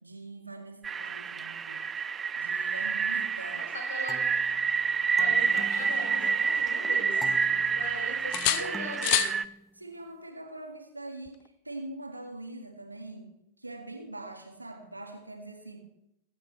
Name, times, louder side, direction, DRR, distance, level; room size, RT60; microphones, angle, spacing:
voice 1, 0.0-1.8 2.4-3.7 8.6-8.9 9.8-11.4 11.6-13.3 13.6-15.8, right 2 dB, 85° right, 3 dB, 2.1 m, -43 dB
sound 1, 0.8-9.4, right 6 dB, 20° right, 0.4 m, -28 dB
voice 2, 3.5-4.2 5.2-7.3 7.7-9.2, left 1 dB, 65° left, 0 dB, 5.0 m, -40 dB
sound 2, 4.1-6.6 7.2-10.0, left 1 dB, 5° left, 0.8 m, -47 dB
sound 3, 5.2-6.7 7.1-7.9 8.3-9.4 11.3-11.5, left 16 dB, 45° left, 0.6 m, -32 dB
22.5 x 9.6 x 3.3 m, 0.84 s
figure-of-eight pair, 90°, 0 cm